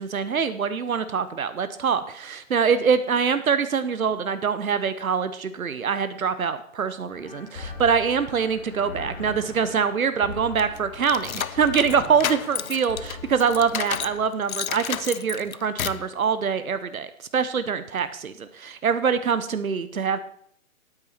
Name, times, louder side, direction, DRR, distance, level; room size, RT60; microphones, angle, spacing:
voice 1, 0.0-20.2, right 6 dB, 85° right, 12 dB, 1.0 m, -24 dB
sound 1, 7.1-14.2, left 4 dB, 45° left, 3.4 m, -40 dB
sound 2, 10.6-14.2 14.5-16.1, left 9 dB, 85° left, 0.6 m, -31 dB
13.0 x 9.0 x 4.4 m, 0.67 s
hypercardioid pair, 145°, 41 cm